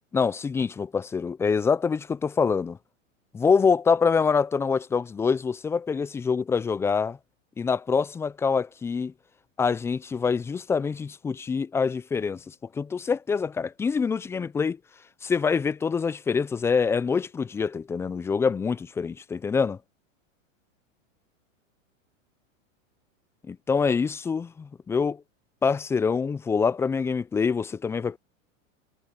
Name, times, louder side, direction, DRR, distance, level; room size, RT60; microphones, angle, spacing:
voice 1, 0.1-2.8 3.3-7.2 7.6-9.1 9.6-12.4 12.7-14.8 15.2-19.8 23.5-25.2 25.6-28.2, left 5 dB, 5° left, 0.3 m, -25 dB
hypercardioid pair, 115°, 40 cm